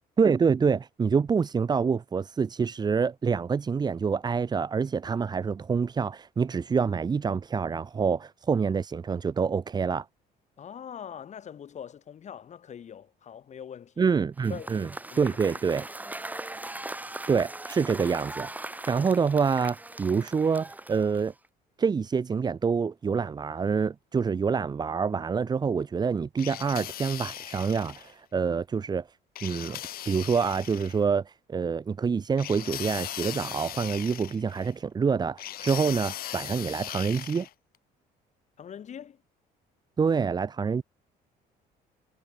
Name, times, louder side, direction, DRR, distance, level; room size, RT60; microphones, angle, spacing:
voice 1, 0.2-10.1 14.0-14.9 15.2-15.9 17.3-18.5 18.9-21.3 21.8-29.1 29.4-29.8 30.1-37.5 40.0-40.8, right 5 dB, 25° right, 0.6 m, -26 dB
voice 2, 10.6-14.1 14.5-15.4 38.6-39.2, left 8 dB, 45° left, 1.8 m, -43 dB
Cheering / Applause / Crowd, 14.4-21.5, right 2 dB, 10° right, 2.0 m, -40 dB
sound 1, 26.4-28.1 29.4-31.0 32.4-34.7 35.4-37.5, left 13 dB, 60° left, 1.2 m, -38 dB
cardioid pair, 110°, 17 cm